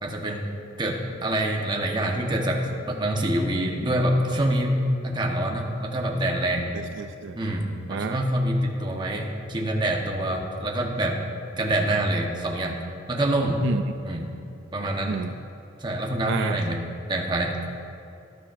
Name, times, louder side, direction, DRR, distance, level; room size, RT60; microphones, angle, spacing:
voice 1, 0.0-0.5 0.8-6.7 7.3-11.2 11.6-12.8 13.1-13.6 14.0-14.2 14.7-15.2 15.8-16.8 17.1-17.6, right 1 dB, 25° right, 1 dB, 1.1 m, -26 dB
voice 2, 6.7-7.4 7.9-8.2 13.6-13.8 15.1-15.3 16.3-16.6, right 6 dB, 65° right, 8 dB, 0.4 m, -30 dB
18.5 x 9.9 x 2.6 m, 2.6 s
head